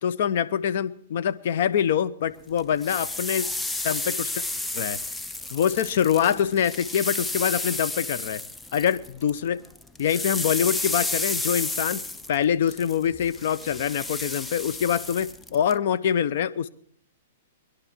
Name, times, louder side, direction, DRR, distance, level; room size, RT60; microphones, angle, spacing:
voice 1, 0.0-3.5 3.8-4.4 4.7-5.0 5.5-8.4 8.7-9.6 10.0-12.0 12.3-16.7, left 8 dB, 60° left, 0.8 m, -24 dB
sound 1, 2.6-9.4 9.6-15.7, left 2 dB, 10° left, 0.5 m, -32 dB
21.0 x 11.5 x 4.5 m
hypercardioid pair, 120°, 0 cm